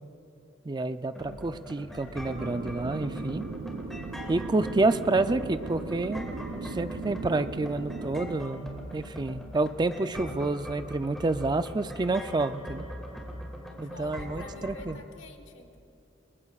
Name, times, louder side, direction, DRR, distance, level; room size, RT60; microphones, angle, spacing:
voice 1, 0.7-3.4 4.3-6.3 6.6-12.8 13.8-15.0, right 2 dB, 20° right, 11 dB, 0.4 m, -29 dB
sound 1, 1.1-14.9, equal, ahead, 2.2 m, -42 dB
sound 2, 2.3-8.4, right 3 dB, 80° right, 0.6 m, -38 dB
voice 2, 13.6-15.8, left 2 dB, 70° left, 6 dB, 1.4 m, -48 dB
28.0 x 21.5 x 2.4 m, 2.7 s
head